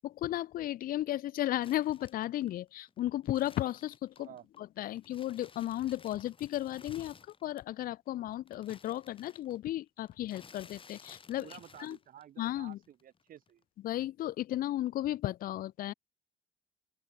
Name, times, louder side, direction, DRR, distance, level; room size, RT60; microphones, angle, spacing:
voice 1, 0.0-4.3 4.6-7.2 7.4-12.0 12.4-12.8 13.8-15.9, left 14 dB, 60° left, 0.6 m, -34 dB
sound 1, 1.6-4.6 4.9-7.8 8.1-12.5 12.7-13.6, left 5 dB, 30° left, 7.4 m, -56 dB
voice 2, 11.4-13.6, right 10 dB, 55° right, 3.1 m, -52 dB
open air
cardioid pair, 110°, 17 cm